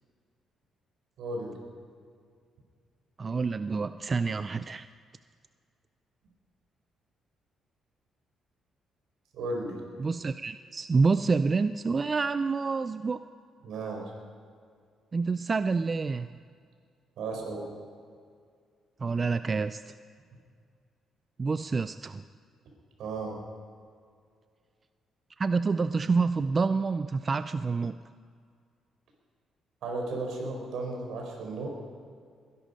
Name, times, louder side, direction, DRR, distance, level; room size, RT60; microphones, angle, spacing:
voice 1, 1.2-1.5 9.3-9.8 13.6-14.1 17.2-17.6 23.0-23.4 29.8-31.7, right 2 dB, 80° right, 1 dB, 4.2 m, -34 dB
voice 2, 3.2-4.9 10.0-13.2 15.1-16.3 19.0-19.9 21.4-22.2 25.4-28.0, right 4 dB, 35° right, 12 dB, 0.4 m, -28 dB
21.0 x 11.0 x 5.3 m, 2.1 s
cardioid pair, 90°, 0 cm